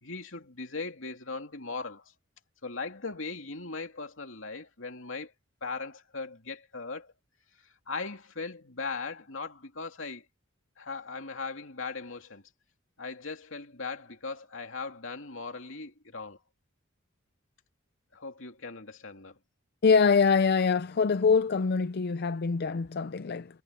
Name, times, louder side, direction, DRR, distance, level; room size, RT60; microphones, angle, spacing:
voice 1, 0.0-2.1 2.6-5.3 5.6-7.1 7.9-10.2 10.8-12.4 13.0-16.4 18.1-19.3, left 4 dB, 70° left, 2.9 m, -39 dB
voice 2, 19.8-23.5, left 5 dB, 55° left, 0.5 m, -24 dB
head